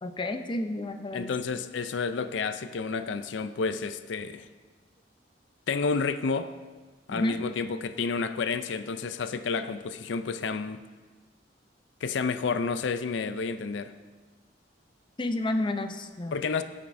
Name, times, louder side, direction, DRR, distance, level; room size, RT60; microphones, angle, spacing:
voice 1, 0.0-1.4 7.1-7.4 15.2-16.4, left 2 dB, 25° left, 7 dB, 0.5 m, -31 dB
voice 2, 1.1-4.5 5.7-6.5 7.1-10.9 12.0-13.9 16.3-16.6, left 4 dB, 80° left, 11 dB, 0.5 m, -30 dB
16.0 x 8.7 x 2.6 m, 1.4 s
head